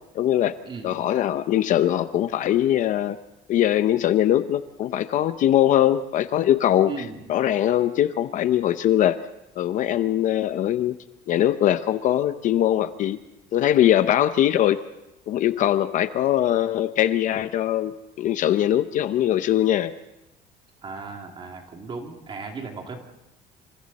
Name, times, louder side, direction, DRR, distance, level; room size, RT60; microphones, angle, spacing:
voice 1, 0.1-0.5 0.8-3.2 3.5-9.2 9.6-11.0 11.3-13.2 13.5-14.8 15.3-19.9, left 12 dB, 45° left, 11 dB, 0.7 m, -21 dB
voice 2, 6.8-7.2 20.8-23.0, right 4 dB, 30° right, 3 dB, 2.7 m, -36 dB
27.5 x 26.5 x 4.2 m, 0.92 s
cardioid pair, 175°, 18 cm